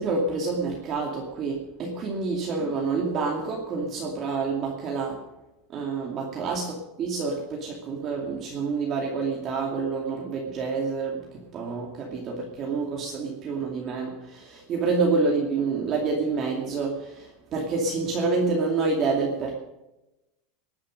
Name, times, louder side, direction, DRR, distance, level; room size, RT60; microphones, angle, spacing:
voice 1, 0.0-5.2 5.7-11.3 11.5-19.6, right 4 dB, 30° right, -1 dB, 2.5 m, -28 dB
20.5 x 10.0 x 5.2 m, 0.96 s
supercardioid pair, 160°, 0 cm